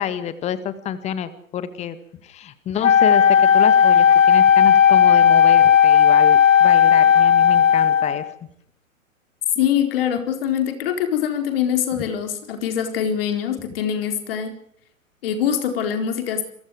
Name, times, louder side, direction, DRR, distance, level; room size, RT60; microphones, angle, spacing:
voice 1, 0.0-2.0 2.2-8.3, left 9 dB, 15° left, 13 dB, 1.9 m, -28 dB
Wind instrument woodwind instrument, 2.8-8.3, left 8 dB, 65° left, 1.1 m, -14 dB
voice 2, 9.6-14.6 15.2-16.4, left 9 dB, 45° left, 6 dB, 4.3 m, -23 dB
29.0 x 23.0 x 5.0 m, 0.70 s
figure-of-eight pair, 120°, 41 cm